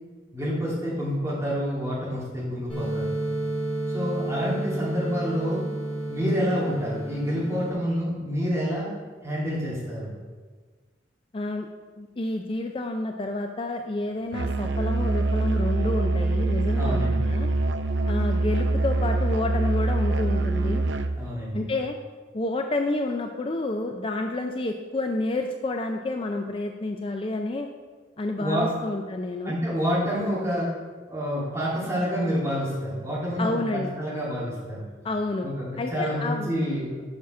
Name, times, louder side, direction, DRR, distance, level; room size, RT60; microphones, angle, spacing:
voice 1, 0.3-3.1 3.9-5.6 6.1-8.9 9.2-10.1 16.8-17.3 21.2-21.7 28.4-28.8 29.4-30.7 31.1-34.8 35.4-36.9, equal, 15° right, -7 dB, 2.6 m, -28 dB
sound 1, 2.7-7.7, right 1 dB, 5° left, 2.7 m, -30 dB
voice 2, 11.3-11.7 12.0-17.5 18.1-20.8 21.5-21.9 22.3-27.7 28.2-29.6 33.4-34.0 35.0-35.5 35.8-36.5, left 2 dB, 30° left, 4 dB, 0.4 m, -29 dB
Musical instrument, 14.3-21.2, right 2 dB, 65° right, 0.5 m, -24 dB
7.3 x 5.7 x 6.0 m, 1.4 s
head